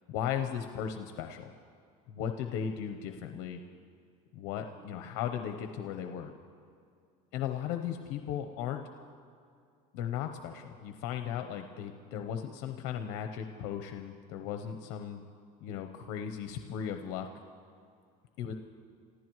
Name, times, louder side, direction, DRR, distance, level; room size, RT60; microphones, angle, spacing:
voice 1, 0.1-1.5 2.1-3.6 4.3-6.3 7.3-8.8 9.9-15.2 15.6-17.3 18.4-18.5, left 9 dB, 75° left, 5 dB, 0.8 m, -36 dB
29.0 x 15.0 x 3.1 m, 2.3 s
cardioid pair, 155°, 17 cm